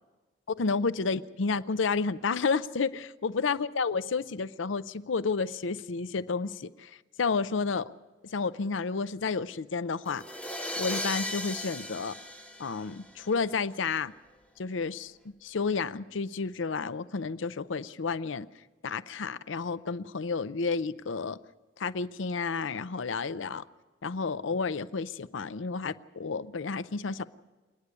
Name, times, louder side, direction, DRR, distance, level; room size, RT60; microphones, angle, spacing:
voice 1, 0.6-7.9 8.3-10.2 10.8-12.2 12.6-14.1 14.6-18.5 18.8-21.4 21.8-23.6 24.0-27.2, left 4 dB, 70° left, 16 dB, 0.6 m, -31 dB
sound 1, 10.1-13.3, left 1 dB, 5° left, 0.9 m, -36 dB
28.5 x 9.9 x 9.4 m, 1.3 s
head